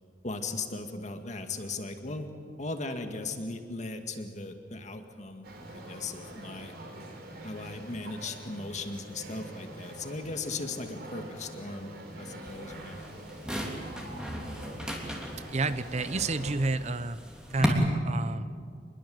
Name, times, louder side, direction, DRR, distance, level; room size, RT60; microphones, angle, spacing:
voice 1, 0.2-2.3 2.6-6.7 7.4-13.0, left 3 dB, 45° left, 6 dB, 2.1 m, -38 dB
sound 1, 5.4-16.5, right 1 dB, 60° right, 4.6 m, -45 dB
sound 2, 12.4-17.7, equal, 5° right, 3.2 m, -36 dB
voice 2, 15.5-17.2 17.5-18.5, right 3 dB, 40° right, 13 dB, 0.7 m, -30 dB
26.0 x 21.5 x 7.9 m, 2.2 s
head